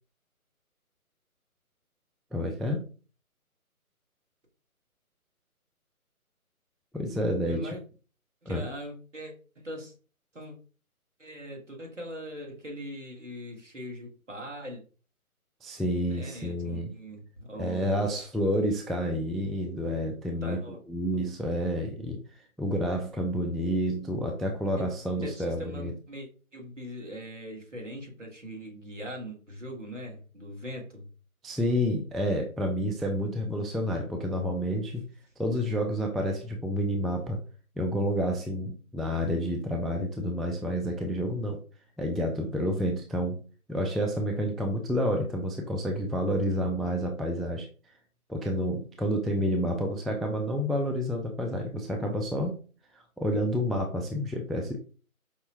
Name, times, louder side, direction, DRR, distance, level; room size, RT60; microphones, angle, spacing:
voice 1, 2.3-2.9 6.9-7.8 8.5-8.7 15.6-16.9 17.6-20.6 20.9-22.2 22.6-25.9 31.4-35.0 35.4-37.4 37.8-41.6 42.0-43.4 43.7-47.7 48.3-52.6 52.9-54.8, equal, ahead, 2 dB, 0.4 m, -29 dB
voice 2, 7.5-7.8 8.4-9.9 10.3-10.5 11.2-14.8 16.1-17.9 20.4-20.8 21.1-21.2 24.8-24.9 25.2-31.1, equal, 55° right, -1 dB, 1.6 m, -41 dB
5.3 x 2.1 x 2.8 m, 0.37 s
figure-of-eight pair, 175°, 44 cm